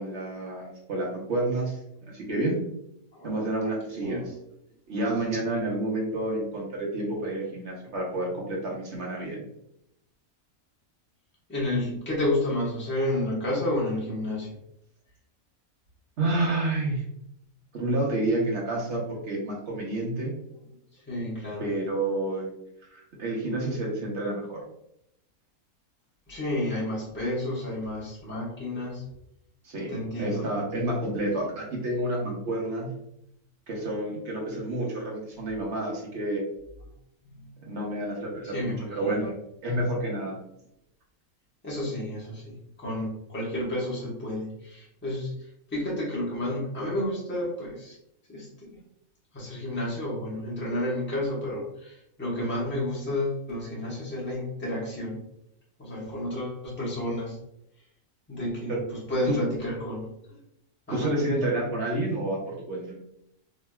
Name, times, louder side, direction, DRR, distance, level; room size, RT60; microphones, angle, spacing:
voice 1, 0.0-1.7 2.1-2.6 3.2-4.2 4.9-9.4 16.2-17.0 17.7-20.3 21.6-22.5 22.9-24.6 29.6-29.9 30.2-32.9 33.7-36.4 37.7-39.3 39.6-40.4 58.7-58.8 59.3-59.4 60.9-62.9, right 1 dB, 55° right, -2 dB, 1.1 m, -29 dB
voice 2, 11.5-14.5 18.8-18.9 21.1-21.6 26.3-29.0 29.9-30.6 37.2-37.5 38.4-39.2 41.6-45.3 45.7-48.0 48.3-48.8 49.3-55.2 55.8-57.4 58.3-60.1 60.9-61.1, left 1 dB, 10° left, -6 dB, 0.9 m, -31 dB
3.2 x 2.7 x 2.2 m, 0.78 s
omnidirectional pair, 1.5 m